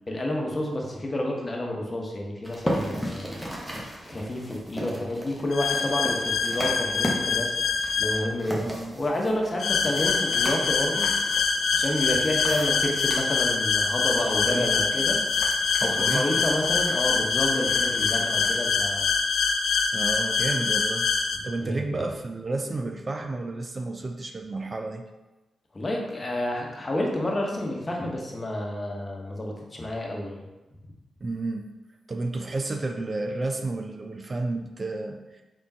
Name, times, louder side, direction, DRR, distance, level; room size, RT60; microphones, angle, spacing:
voice 1, 0.1-3.3 4.0-7.5 8.0-8.7 8.9-11.1 11.7-15.2 15.8-19.1 21.6-22.1 25.7-30.4, left 1 dB, 35° left, 0 dB, 1.0 m, -29 dB
sound 1, 2.4-18.7, equal, 5° right, 1.0 m, -37 dB
sound 2, 5.5-8.2 9.6-21.4, left 5 dB, 75° left, 0.4 m, -25 dB
voice 2, 8.6-8.9 14.4-14.9 15.8-16.4 19.9-21.1 21.4-25.0 31.2-31.7 32.1-35.4, right 2 dB, 40° right, 4 dB, 0.4 m, -31 dB
3.6 x 3.6 x 2.8 m, 1.1 s
supercardioid pair, 45°, 0 cm